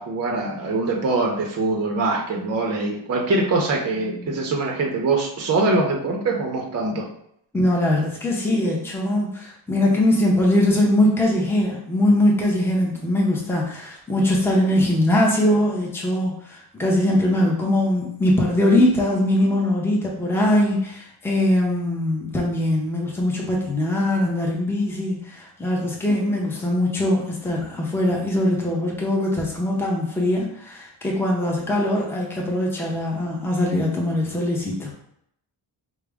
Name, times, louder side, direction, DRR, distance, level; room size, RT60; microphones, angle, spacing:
voice 1, 0.0-7.1, right 3 dB, 35° right, 0 dB, 0.6 m, -23 dB
voice 2, 7.5-34.9, left 1 dB, 5° left, -2 dB, 0.6 m, -21 dB
4.8 x 2.0 x 3.4 m, 0.72 s
wide cardioid pair, 145°, 43 cm